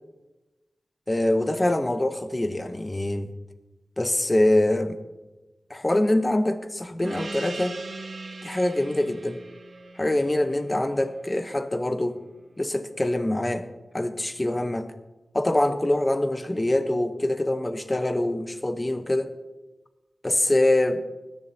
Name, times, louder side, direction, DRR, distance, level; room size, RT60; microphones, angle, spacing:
voice 1, 1.1-3.3 4.0-5.0 5.7-7.8 8.4-9.4 10.0-12.2 12.6-13.7 13.9-14.9 15.3-19.3 20.2-21.0, left 1 dB, 25° left, 9 dB, 0.9 m, -24 dB
Gong, 7.0-12.0, right 3 dB, 85° right, 1.8 m, -40 dB
20.5 x 10.5 x 2.8 m, 1.1 s
wide cardioid pair, 75°, 0 cm